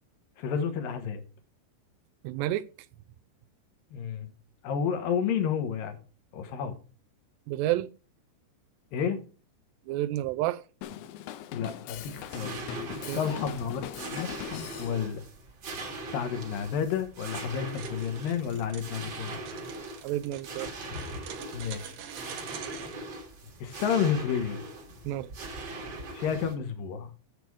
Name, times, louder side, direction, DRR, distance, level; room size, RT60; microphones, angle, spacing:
voice 1, 0.4-1.2 3.9-4.3 4.6-6.0 6.3-6.8 8.9-9.2 11.5-12.6 13.2-14.3 14.8-15.2 16.1-19.4 21.5-21.9 23.6-24.6 26.1-27.1, left 7 dB, 65° left, 2.5 m, -30 dB
voice 2, 2.2-2.7 7.5-7.9 9.9-10.6 13.0-13.4 20.0-20.7 25.1-25.3, right 14 dB, 85° right, 2.4 m, -30 dB
Drum kit, 10.8-15.0, left 11 dB, 85° left, 3.0 m, -40 dB
sound 1, 11.9-26.5, right 2 dB, 45° right, 1.6 m, -41 dB
sound 2, 17.7-23.0, right 8 dB, 70° right, 2.2 m, -45 dB
8.5 x 7.9 x 4.7 m
omnidirectional pair, 5.4 m